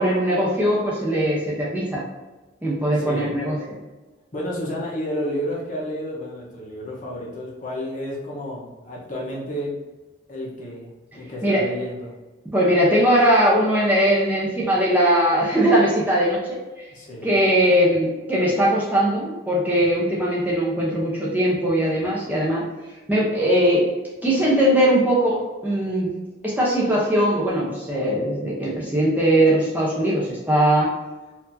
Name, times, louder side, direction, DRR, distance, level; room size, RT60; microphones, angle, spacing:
voice 1, 0.0-2.0 2.6-3.5 11.4-11.7 12.5-16.8 17.2-22.6 23.1-23.9 24.2-26.1 26.4-30.9, right 1 dB, 10° right, -6 dB, 0.7 m, -20 dB
voice 2, 2.9-3.3 4.3-9.7 10.3-12.1 16.9-17.3, equal, 45° left, -4 dB, 1.0 m, -31 dB
4.4 x 2.7 x 2.6 m, 1.2 s
head